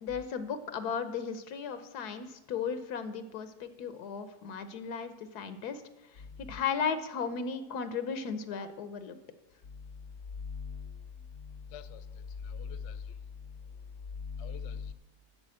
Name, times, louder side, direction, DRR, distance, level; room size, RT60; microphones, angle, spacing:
voice 1, 0.0-5.8 6.5-9.2, left 6 dB, 90° left, 1.4 m, -35 dB
voice 2, 10.4-11.0 11.3-12.1 12.4-13.0 14.2-14.9, left 6 dB, 60° left, 0.8 m, -40 dB
8.7 x 6.9 x 8.5 m
omnidirectional pair, 1.6 m